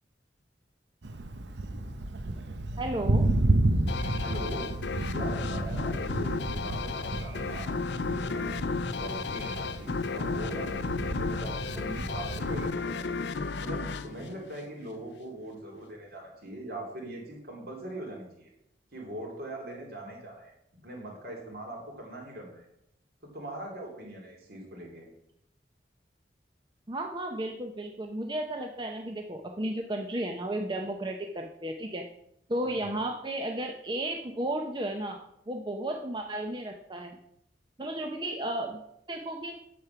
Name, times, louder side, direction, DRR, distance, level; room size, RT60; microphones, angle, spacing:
Thunder, 1.0-12.7, right 2 dB, 85° right, 0.9 m, -31 dB
voice 1, 2.8-3.3 11.8-12.1 26.9-32.0 32.5-35.2 35.5-37.2 37.8-38.8 39.1-39.6, right 1 dB, 25° right, 2 dB, 0.7 m, -34 dB
sound 1, 3.9-15.1, left 4 dB, 75° left, 0.6 m, -33 dB
voice 2, 4.2-4.7 5.1-8.5 8.9-11.8 12.0-13.1 13.6-18.5 18.9-20.5 20.8-22.7 23.2-25.1 32.6-33.0, right 1 dB, 60° right, 0 dB, 3.1 m, -41 dB
8.4 x 7.4 x 5.8 m, 0.78 s
head